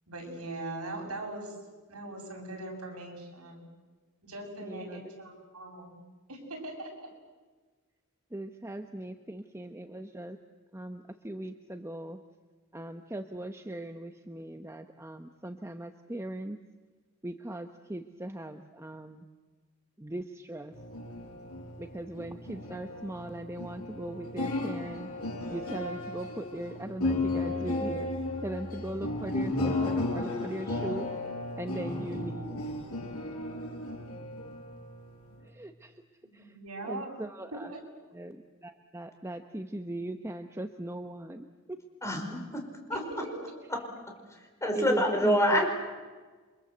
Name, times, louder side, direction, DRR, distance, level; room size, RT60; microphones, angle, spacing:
voice 1, 0.1-1.5 1.9-3.6 4.2-6.0 6.3-7.1 36.2-37.1 37.5-37.8 42.9-43.3, right 2 dB, 75° right, 3 dB, 7.5 m, -40 dB
voice 2, 4.6-5.1 8.3-10.4 10.7-12.2 12.7-16.6 17.2-19.2 20.0-20.7 21.8-25.1 25.5-28.1 28.4-31.1 31.6-32.6 35.6-36.0 36.3-36.5 36.8-37.7 38.1-41.8 44.7-45.7, right 1 dB, 10° right, 7 dB, 0.9 m, -39 dB
sound 1, 20.7-35.4, left 2 dB, 75° left, 7.2 m, -34 dB
voice 3, 42.0-42.6 42.9-43.0 43.7-43.8 44.6-45.7, equal, 15° left, 3 dB, 5.3 m, -26 dB
30.0 x 25.0 x 8.0 m, 1.3 s
head